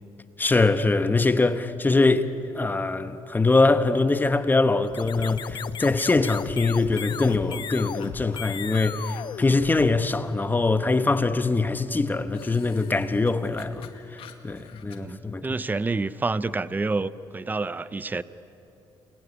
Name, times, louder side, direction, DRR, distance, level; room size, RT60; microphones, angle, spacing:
voice 1, 0.4-2.3 2.5-15.4, left 3 dB, 20° left, 1.2 m, -23 dB
sound 1, 4.8-10.3, left 8 dB, 55° left, 0.8 m, -36 dB
sound 2, 6.8-9.9 12.3-15.0, left 8 dB, 75° left, 2.2 m, -46 dB
voice 2, 14.9-18.2, right 3 dB, 20° right, 0.7 m, -28 dB
29.0 x 21.0 x 9.7 m
cardioid pair, 95°, 9 cm